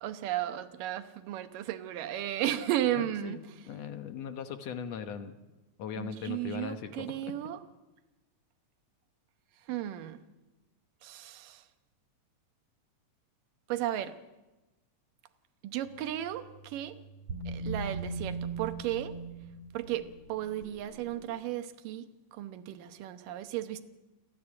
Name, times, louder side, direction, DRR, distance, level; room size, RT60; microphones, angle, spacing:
voice 1, 0.0-3.4 6.0-7.6 9.7-10.2 11.0-11.6 13.7-14.1 15.6-16.9 17.5-19.2 19.7-23.8, right 12 dB, 90° right, 9 dB, 2.7 m, -34 dB
voice 2, 2.9-5.3 5.8-7.2, left 7 dB, 65° left, 8 dB, 1.9 m, -39 dB
sound 1, 15.9-21.3, right 3 dB, 45° right, 3.1 m, -40 dB
29.0 x 10.5 x 9.9 m, 1.1 s
omnidirectional pair, 3.7 m